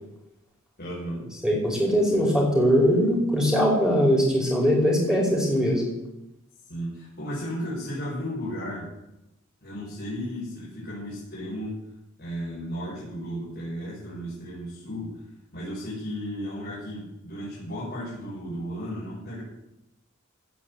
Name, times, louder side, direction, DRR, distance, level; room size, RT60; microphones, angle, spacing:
voice 1, 0.8-1.3 6.7-8.9 9.6-11.8 12.2-15.2 15.5-19.4, equal, 45° left, -9 dB, 5.8 m, -34 dB
voice 2, 1.4-5.8, equal, 5° right, -3 dB, 5.5 m, -21 dB
16.5 x 7.2 x 8.3 m, 0.88 s
head